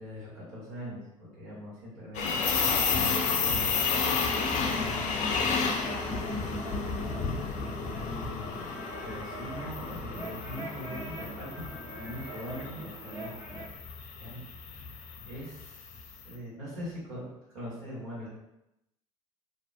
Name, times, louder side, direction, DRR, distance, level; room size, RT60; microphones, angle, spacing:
voice 1, 0.0-2.4 2.9-4.2 6.0-6.5 8.0-14.4 14.7-18.3, equal, 80° right, -8 dB, 1.2 m, -42 dB
sound 1, 2.1-16.2, left 5 dB, 45° left, 0.4 m, -32 dB
sound 2, 3.9-13.7, equal, 15° right, 0.6 m, -42 dB
voice 2, 4.6-5.4 5.8-7.2, right 2 dB, 45° right, -7 dB, 1.0 m, -47 dB
2.4 x 2.1 x 2.5 m, 0.87 s
hypercardioid pair, 65°, 17 cm